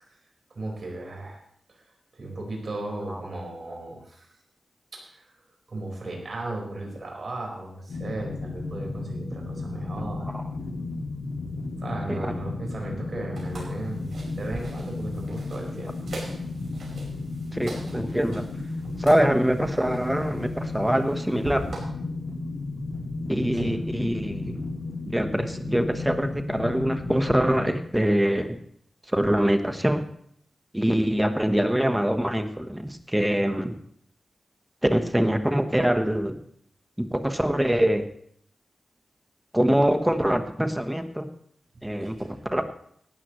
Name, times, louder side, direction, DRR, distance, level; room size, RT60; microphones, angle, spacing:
voice 1, 0.5-1.4 1.7-1.8 2.1-4.3 4.9-5.3 5.7-10.3 11.8-16.1 23.5-23.8 41.9-42.3, right 2 dB, 50° right, -1 dB, 4.7 m, -36 dB
sound 1, 7.9-27.8, left 3 dB, 85° left, 2.5 m, -34 dB
sound 2, 13.3-21.8, right 2 dB, 70° right, 5.0 m, -42 dB
voice 2, 17.5-18.4 19.0-21.7 23.3-24.6 25.1-28.6 29.1-30.1 30.7-33.8 34.8-36.4 37.0-38.0 39.5-41.3 41.8-42.6, equal, 5° right, 7 dB, 1.1 m, -24 dB
17.5 x 13.0 x 3.1 m, 0.66 s
wide cardioid pair, 120°, 0 cm